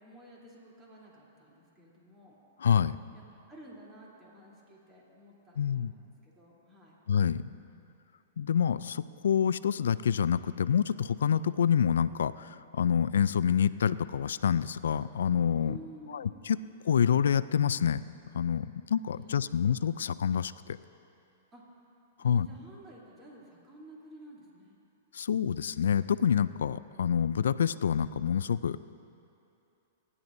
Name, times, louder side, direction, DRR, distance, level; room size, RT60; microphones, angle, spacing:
voice 1, 0.0-2.4 3.1-3.2 3.5-7.0 7.7-7.9 15.6-16.6 19.1-19.8 21.5-21.7 22.2-24.8, right 1 dB, 20° right, -5 dB, 3.2 m, -52 dB
voice 2, 2.6-3.0 5.6-5.9 7.1-7.4 8.4-15.8 16.5-16.6 16.8-18.0 18.3-20.8 22.2-22.5 25.1-28.8, left 8 dB, 80° left, 16 dB, 0.3 m, -27 dB
27.5 x 11.0 x 2.7 m, 2.8 s
hypercardioid pair, 125°, 0 cm